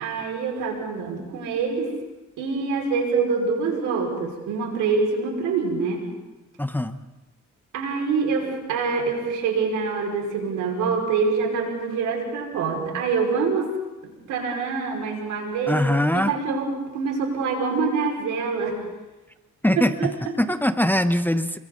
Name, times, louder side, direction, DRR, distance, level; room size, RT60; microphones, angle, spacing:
voice 1, 0.0-1.9 2.4-6.0 7.7-13.7 14.0-15.8 16.1-16.7 16.9-18.8 20.0-20.1, right 5 dB, 90° right, 1 dB, 5.4 m, -25 dB
voice 2, 6.6-7.0 15.7-16.3 19.6-21.6, left 1 dB, 5° left, 10 dB, 1.0 m, -22 dB
29.0 x 23.0 x 4.0 m, 1.1 s
cardioid pair, 90°, 30 cm